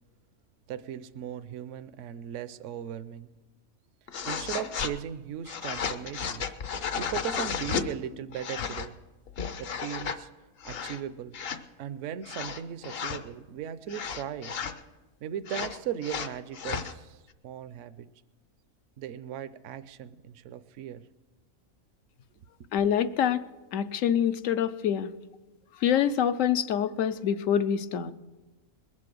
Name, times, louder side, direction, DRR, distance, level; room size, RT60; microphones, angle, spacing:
voice 1, 0.7-3.3 4.3-6.5 7.0-9.0 9.6-10.3 10.6-11.4 11.8-14.5 15.2-17.2 17.4-18.1 19.0-21.0, right 9 dB, 65° right, 13 dB, 0.9 m, -37 dB
sound 1, 4.1-4.9 5.5-7.9 8.3-8.9 9.3-10.2 10.6-11.0 11.3-11.6 12.2-13.2 13.9-14.8 15.5-16.9, left 6 dB, 55° left, 0.8 m, -33 dB
voice 2, 22.7-23.4 23.7-25.1 25.8-28.1, left 9 dB, 75° left, 12 dB, 1.0 m, -26 dB
21.0 x 7.7 x 6.2 m, 1.1 s
omnidirectional pair, 1.4 m